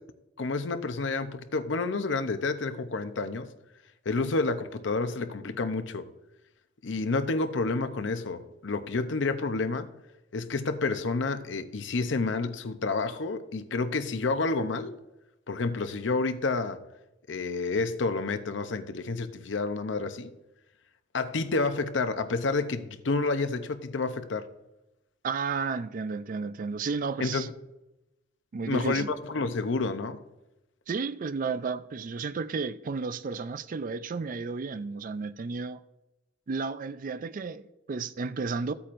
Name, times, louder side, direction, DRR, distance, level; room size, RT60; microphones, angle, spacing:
voice 1, 0.4-3.5 4.1-6.1 6.8-9.9 10.3-15.0 15.5-16.8 17.3-20.3 21.1-24.5 27.2-27.5 28.7-30.2, left 3 dB, 75° left, 0.7 m, -29 dB
voice 2, 25.2-27.5 28.5-29.1 30.9-35.8 36.5-38.7, right 4 dB, 45° right, 0.4 m, -32 dB
14.5 x 8.6 x 2.5 m
head